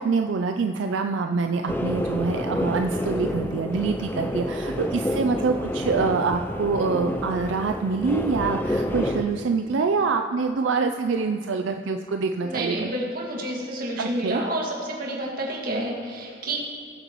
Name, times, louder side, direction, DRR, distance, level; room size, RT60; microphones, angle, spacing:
voice 1, 0.0-12.9 14.0-14.4, right 4 dB, 80° right, 6 dB, 0.4 m, -25 dB
sound 1, 1.7-9.2, left 1 dB, 10° left, 0.5 m, -29 dB
voice 2, 12.4-16.6, right 1 dB, 50° right, -2 dB, 2.0 m, -29 dB
19.5 x 7.9 x 3.1 m, 2.2 s
head